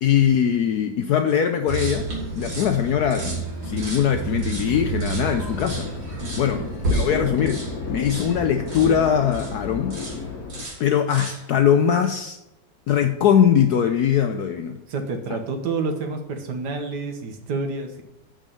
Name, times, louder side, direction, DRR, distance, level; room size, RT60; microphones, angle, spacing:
voice 1, 0.0-2.1 2.3-5.9 6.4-6.6 6.9-7.6 7.9-10.0 10.8-12.4 12.9-14.8, left 8 dB, 75° left, 0.9 m, -21 dB
sound 1, 1.7-9.6 9.9-10.2 10.5-11.5, right 3 dB, 90° right, 3.5 m, -30 dB
sound 2, 5.3-10.6, left 4 dB, 55° left, 1.3 m, -33 dB
voice 2, 6.2-6.7 14.9-18.0, right 3 dB, 60° right, 1.5 m, -29 dB
6.3 x 6.3 x 6.8 m
omnidirectional pair, 2.2 m